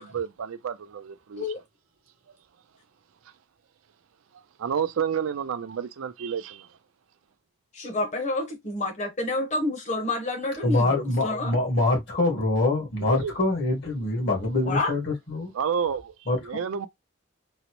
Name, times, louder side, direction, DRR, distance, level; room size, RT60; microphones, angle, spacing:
voice 1, 0.0-1.4 4.6-6.7 13.0-13.3 15.5-16.1 16.4-16.9, right 7 dB, 80° right, 0.4 m, -30 dB
voice 2, 7.7-11.6 14.6-14.9, left 2 dB, 35° left, 0.9 m, -29 dB
voice 3, 10.6-15.5 16.3-16.4, left 2 dB, 60° left, 1.5 m, -24 dB
3.9 x 2.0 x 2.9 m
head